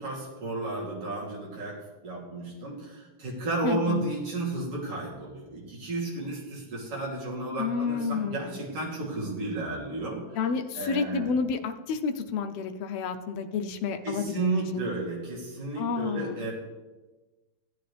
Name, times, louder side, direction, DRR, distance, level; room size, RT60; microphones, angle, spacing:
voice 1, 0.0-1.8 2.0-11.3 14.0-16.5, right 2 dB, 50° right, -5 dB, 3.8 m, -33 dB
voice 2, 3.6-4.0 7.6-8.6 10.3-14.5 14.7-14.8 15.8-16.4, left 5 dB, 75° left, 6 dB, 1.5 m, -30 dB
16.0 x 9.5 x 3.3 m, 1.2 s
omnidirectional pair, 3.5 m